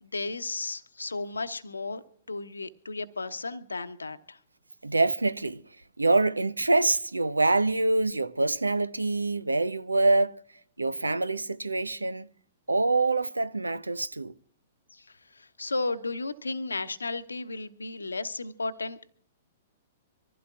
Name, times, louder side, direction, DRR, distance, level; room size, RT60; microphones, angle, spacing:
voice 1, 0.0-2.0 2.3-4.4 14.9-15.1 15.3-19.1, left 3 dB, 80° left, 0.9 m, -34 dB
voice 2, 4.8-5.6 6.0-10.4 10.8-12.3 12.7-14.3, right 2 dB, 85° right, 0.6 m, -25 dB
25.0 x 15.0 x 2.4 m
figure-of-eight pair, 110°, 0 cm